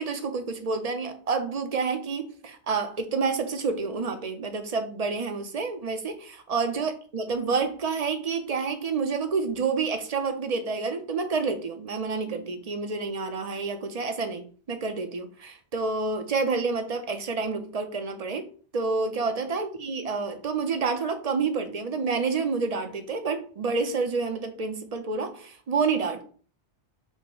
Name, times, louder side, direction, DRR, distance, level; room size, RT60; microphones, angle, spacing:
voice 1, 0.0-18.5 18.7-26.2, right 4 dB, 45° right, 0.5 m, -29 dB
5.4 x 2.1 x 4.6 m
omnidirectional pair, 1.2 m